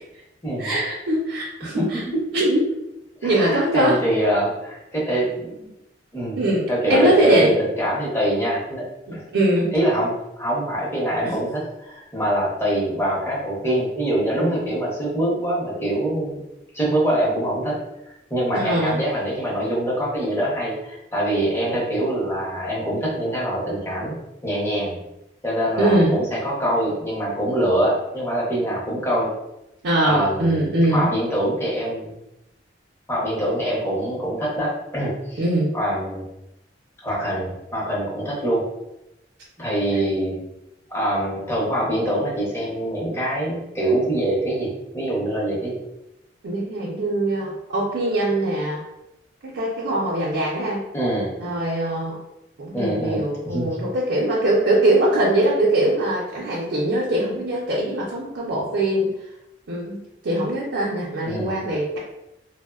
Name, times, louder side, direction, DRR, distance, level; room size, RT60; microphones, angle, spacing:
voice 1, 0.6-2.0 2.3-2.6 3.2-4.0 6.4-7.5 9.1-9.7 11.2-11.3 18.5-19.0 25.8-26.1 29.8-31.1 35.4-35.7 46.4-48.8 49.4-50.8 51.4-52.2 52.6-59.1 59.7-60.0 60.2-62.0, right 1 dB, 85° right, -5 dB, 0.5 m, -22 dB
voice 2, 1.6-2.2 3.2-5.7 6.1-6.4 6.7-9.2 9.7-16.4 16.7-17.8 18.3-24.2 24.4-25.0 25.4-29.3 30.0-32.1 33.1-35.5 35.7-36.3 37.0-38.6 39.6-40.4 40.9-45.8 50.9-51.3 52.7-53.7 61.2-61.5, right 1 dB, 15° left, -6 dB, 0.7 m, -24 dB
3.0 x 2.0 x 2.3 m, 0.90 s
head